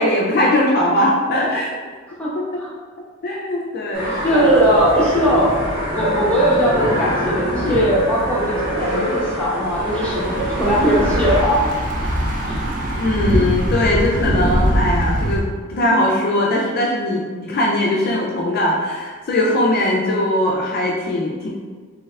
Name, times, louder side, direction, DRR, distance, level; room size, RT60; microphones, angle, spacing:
voice 1, 0.0-1.7 3.2-4.5 7.6-7.9 13.0-21.5, left 1 dB, 45° left, -3 dB, 0.4 m, -20 dB
voice 2, 2.2-2.7 4.1-5.6 5.9-11.7 12.5-12.6 19.9-20.2, equal, 5° left, -7 dB, 0.7 m, -19 dB
sound 1, 3.9-11.4, equal, 70° right, 1.3 m, -25 dB
Thunder / Bicycle, 9.6-15.4, right 1 dB, 40° right, 0.5 m, -22 dB
3.2 x 3.1 x 2.3 m, 1.5 s
head